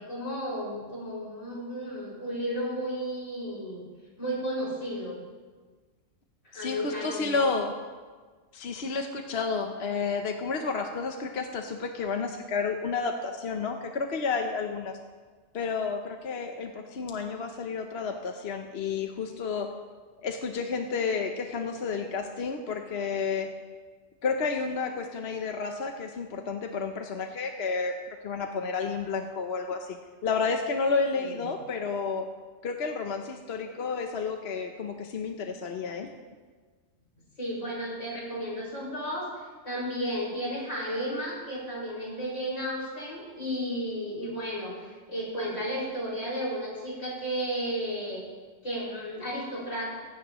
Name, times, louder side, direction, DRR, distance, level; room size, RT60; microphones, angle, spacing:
voice 1, 0.0-3.8 4.2-5.2 6.4-7.4 31.1-31.4 37.4-39.3 39.6-48.2 48.6-49.9, equal, 90° left, -6 dB, 6.0 m, -33 dB
voice 2, 6.5-7.8 8.5-15.0 15.5-19.7 20.2-23.5 24.2-28.0 28.2-30.0 30.2-32.3 32.6-36.1, left 4 dB, 60° left, 4 dB, 1.1 m, -31 dB
18.0 x 16.0 x 3.1 m, 1.4 s
omnidirectional pair, 1.2 m